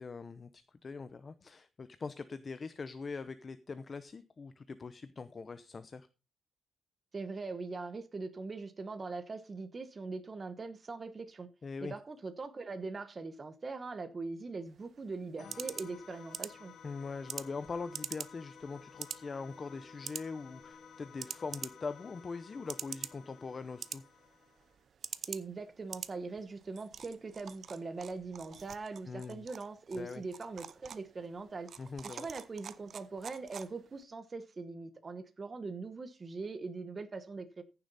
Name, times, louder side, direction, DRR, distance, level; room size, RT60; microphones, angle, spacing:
voice 1, 0.0-6.1 11.6-11.9 16.8-24.0 29.1-29.5 29.9-30.2 31.8-32.3, left 4 dB, 30° left, 0.7 m, -42 dB
voice 2, 7.1-11.5 11.8-16.7 25.2-31.7 32.0-37.6, right 3 dB, 30° right, 1.1 m, -41 dB
sound 1, 14.7-34.0, right 7 dB, 55° right, 0.7 m, -47 dB
sound 2, 15.4-24.8, left 7 dB, 60° left, 2.1 m, -55 dB
15.0 x 7.0 x 4.1 m
cardioid pair, 130°, 0 cm